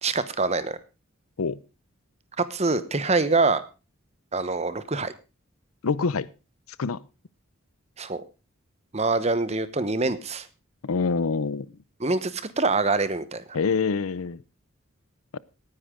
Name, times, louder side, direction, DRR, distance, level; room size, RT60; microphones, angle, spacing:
voice 1, 0.0-0.8 2.4-3.6 4.3-5.1 8.0-8.2 8.9-10.5 12.0-13.4, right 3 dB, 30° right, 13 dB, 1.0 m, -25 dB
voice 2, 5.8-6.3 6.8-7.0 10.8-11.7 13.5-14.4 15.3-15.4, left 5 dB, 90° left, 20 dB, 0.6 m, -25 dB
18.5 x 10.0 x 3.7 m, 0.31 s
head